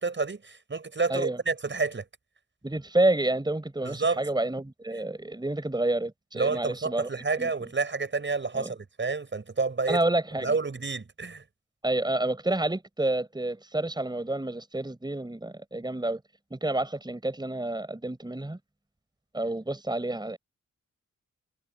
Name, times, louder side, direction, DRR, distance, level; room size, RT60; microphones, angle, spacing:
voice 1, 0.0-2.0 3.8-4.2 6.4-10.0 10.4-11.4, right 4 dB, 40° right, 6.9 m, -29 dB
voice 2, 2.6-7.1 7.4-7.5 8.5-8.7 9.9-10.5 11.8-16.2 16.5-18.6 19.3-20.4, right 2 dB, 15° right, 5.3 m, -29 dB
wide cardioid pair, 110°, 31 cm